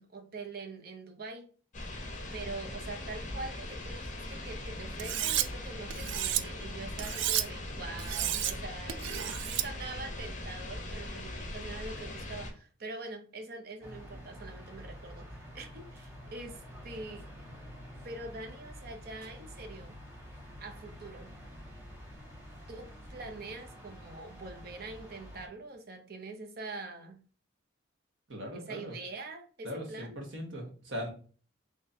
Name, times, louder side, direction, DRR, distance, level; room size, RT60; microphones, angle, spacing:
voice 1, 0.0-1.5 2.3-17.3 18.0-20.0 20.6-21.4 22.7-27.2 28.5-30.2, right 3 dB, 50° right, 0.7 m, -44 dB
sound 1, 1.7-12.5, left 1 dB, 40° left, 0.8 m, -40 dB
Cutlery silverware, 5.0-5.5 5.9-6.4 7.0-7.4 8.0-8.5 8.9-9.7, right 12 dB, 70° right, 0.3 m, -31 dB
sound 2, 13.8-25.5, equal, 10° right, 1.0 m, -48 dB
voice 2, 28.3-29.0 29.6-31.1, equal, 85° right, 1.3 m, -39 dB
3.8 x 3.1 x 2.7 m
head